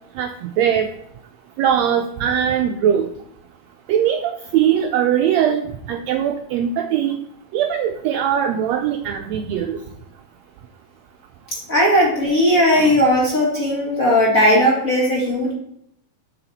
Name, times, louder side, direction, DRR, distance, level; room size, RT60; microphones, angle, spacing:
voice 1, 0.2-0.9 1.6-3.1 3.9-7.2 7.5-9.8, right 9 dB, 85° right, 6 dB, 1.5 m, -20 dB
voice 2, 11.7-15.5, equal, 35° left, -3 dB, 1.5 m, -17 dB
7.0 x 6.5 x 4.1 m, 0.74 s
omnidirectional pair, 3.6 m